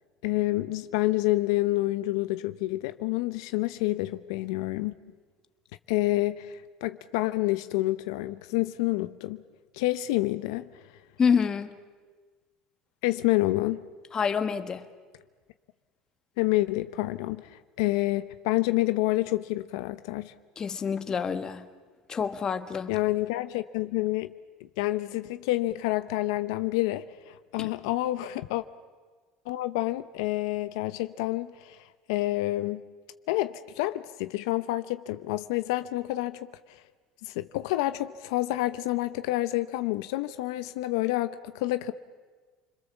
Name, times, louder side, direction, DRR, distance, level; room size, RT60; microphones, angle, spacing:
voice 1, 0.2-4.9 5.9-9.4 9.7-10.7 13.0-13.8 16.4-20.3 22.9-24.3 24.8-28.6 29.5-31.8 32.1-32.8 33.3-36.8 37.2-41.9, left 18 dB, 85° left, 0.8 m, -28 dB
voice 2, 11.2-11.8 14.1-14.9 20.6-21.7 22.1-22.9 27.6-27.7, left 6 dB, 30° left, 1.4 m, -27 dB
29.0 x 22.0 x 7.3 m
supercardioid pair, 125°, 2 cm